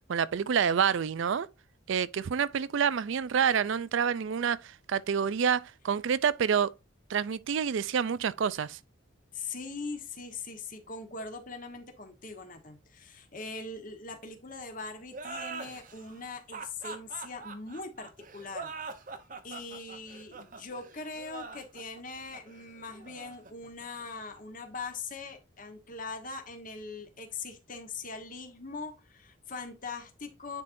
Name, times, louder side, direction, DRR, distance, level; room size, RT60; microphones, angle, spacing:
voice 1, 0.1-1.5 1.9-6.7 7.1-8.8, right 7 dB, 65° right, 0.4 m, -28 dB
voice 2, 9.3-18.7 19.4-30.6, left 4 dB, 40° left, 1.2 m, -41 dB
sound 1, 15.1-24.4, right 4 dB, 40° right, 0.8 m, -43 dB
9.6 x 4.2 x 2.6 m
head